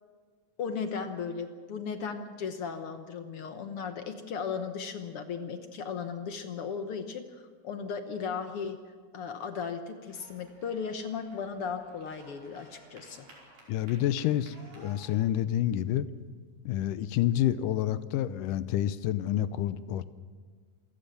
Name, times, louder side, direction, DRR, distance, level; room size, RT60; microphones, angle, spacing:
voice 1, 0.6-8.8 9.1-13.3, left 6 dB, 65° left, 7 dB, 1.5 m, -36 dB
sound 1, 10.1-15.1, right 2 dB, 65° right, 6.6 m, -56 dB
voice 2, 13.7-16.1 16.7-20.1, left 12 dB, 80° left, 14 dB, 2.3 m, -28 dB
28.0 x 15.5 x 6.9 m, 1.6 s
omnidirectional pair, 3.8 m